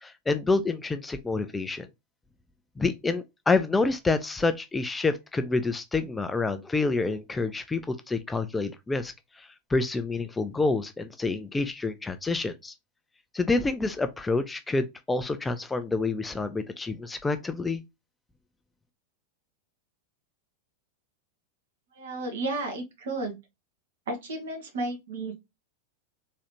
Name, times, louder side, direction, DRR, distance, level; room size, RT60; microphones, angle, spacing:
voice 1, 0.0-1.9 2.8-9.1 9.4-12.7 13.3-17.8, left 3 dB, 10° left, 0.4 m, -28 dB
voice 2, 21.9-23.4 24.1-25.3, right 2 dB, 60° right, 1.6 m, -33 dB
3.8 x 3.1 x 2.9 m
figure-of-eight pair, 90°, 0 cm